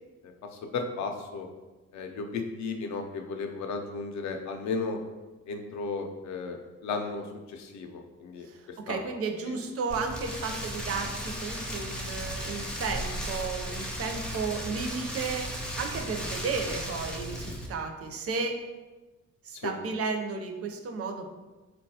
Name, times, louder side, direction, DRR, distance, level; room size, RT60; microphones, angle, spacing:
voice 1, 0.2-1.5 1.9-5.0 5.5-8.5 8.9-9.0 9.5-9.6 19.5-19.7, left 4 dB, 65° left, 4 dB, 0.5 m, -35 dB
voice 2, 8.4-18.6 19.4-21.3, right 4 dB, 50° right, 4 dB, 0.5 m, -33 dB
Rain, 9.9-17.7, equal, 5° left, 0.4 m, -36 dB
3.7 x 2.2 x 2.7 m, 1.2 s
cardioid pair, 90°, 30 cm